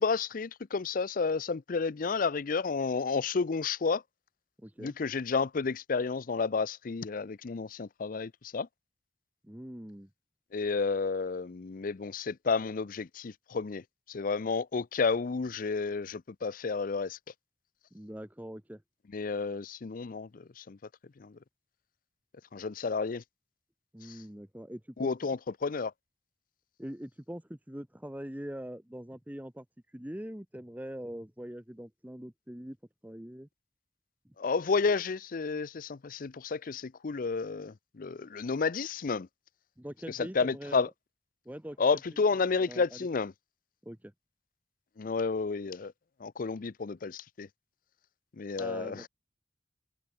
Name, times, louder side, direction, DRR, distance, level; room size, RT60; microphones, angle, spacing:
voice 1, 0.0-4.0 4.8-8.7 10.5-13.8 14.1-17.2 19.1-20.8 21.2-21.3 22.5-23.2 25.0-25.9 34.4-39.3 40.1-40.9 41.8-43.3 45.0-45.9 46.2-47.5 48.4-49.1, left 4 dB, 50° left, 0.5 m, -31 dB
voice 2, 4.6-4.9 9.4-10.1 17.9-18.8 23.9-25.1 26.8-32.8 33.0-33.5 34.2-34.3 39.8-40.9 41.4-41.8 42.1-42.2 42.6-43.0 43.8-44.1 48.6-49.1, equal, 10° right, 1.1 m, -43 dB
head